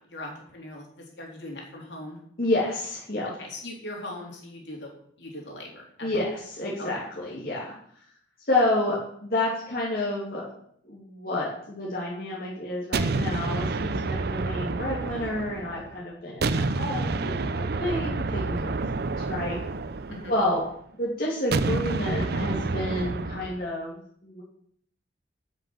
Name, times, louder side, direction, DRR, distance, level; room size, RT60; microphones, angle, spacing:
voice 1, 0.0-2.2 3.2-4.9 5.2-6.2 20.1-20.3, left 1 dB, 75° left, -1 dB, 3.8 m, -40 dB
voice 2, 2.4-3.2 6.0-7.7 8.4-10.5 10.8-18.7 19.2-19.6 20.3-20.6 21.0-24.4, left 1 dB, 55° left, -5 dB, 2.8 m, -29 dB
sound 1, 12.9-15.9 16.4-20.7 21.5-23.6, right 3 dB, 60° right, 0.6 m, -29 dB
10.5 x 6.3 x 7.4 m, 0.64 s
head